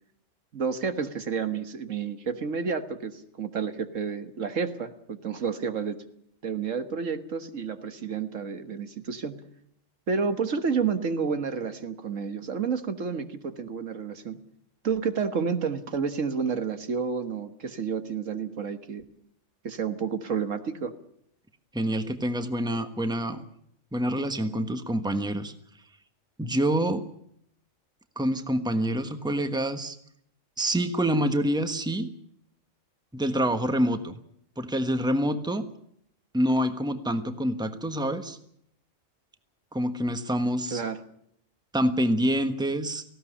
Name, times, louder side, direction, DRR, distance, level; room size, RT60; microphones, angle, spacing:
voice 1, 0.5-6.0 6.4-9.4 10.1-14.4 14.8-19.0 19.6-20.9 40.7-41.0, right 5 dB, 80° right, 9 dB, 1.8 m, -30 dB
voice 2, 21.7-23.4 23.9-25.5 26.4-27.1 28.1-30.0 30.6-32.1 33.1-34.2 34.6-35.7 36.3-38.4 39.7-40.8 41.7-43.0, equal, 5° right, 8 dB, 1.3 m, -26 dB
18.5 x 16.0 x 9.9 m, 0.71 s
omnidirectional pair, 1.3 m